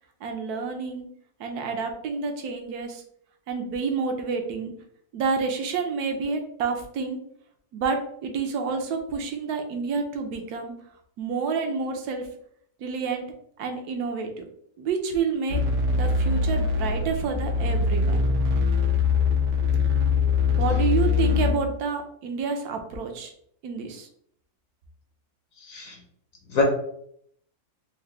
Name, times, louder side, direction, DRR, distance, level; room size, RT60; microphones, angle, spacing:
voice 1, 0.2-1.1 1.4-3.0 3.5-4.7 5.1-7.2 7.7-10.7 11.2-12.3 12.8-13.3 13.6-14.4 14.8-15.6 16.0-18.2 20.6-23.3 23.6-24.1, right 5 dB, 70° right, 4 dB, 1.1 m, -29 dB
sound 1, 15.5-21.5, left 5 dB, 85° right, 1.3 m, -23 dB
voice 2, 25.6-26.0 26.5-26.6, left 4 dB, 60° left, 1 dB, 1.1 m, -27 dB
4.6 x 2.1 x 3.2 m, 0.69 s
omnidirectional pair, 1.8 m